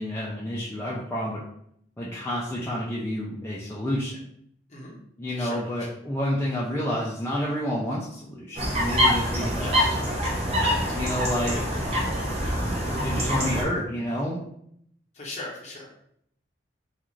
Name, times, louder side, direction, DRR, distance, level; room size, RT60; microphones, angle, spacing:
voice 1, 0.0-1.4 2.0-4.2 5.2-10.1 11.0-11.5 13.0-14.5, equal, 15° left, -6 dB, 0.3 m, -29 dB
voice 2, 5.3-5.9 9.6-10.0 10.6-11.8 15.1-15.9, left 2 dB, 40° left, -3 dB, 0.8 m, -40 dB
sound 1, 8.6-13.6, equal, 35° right, 0.7 m, -25 dB
2.4 x 2.4 x 3.0 m, 0.70 s
head